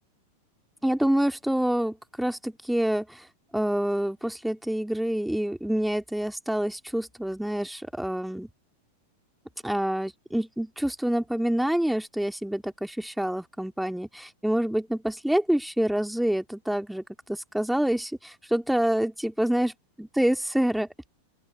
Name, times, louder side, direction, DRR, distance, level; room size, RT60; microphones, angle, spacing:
voice 1, 0.8-3.3 3.5-8.5 9.6-19.7 20.2-20.9, right 1 dB, ahead, 3.0 m, -27 dB
open air
figure-of-eight pair, 90°, 0 cm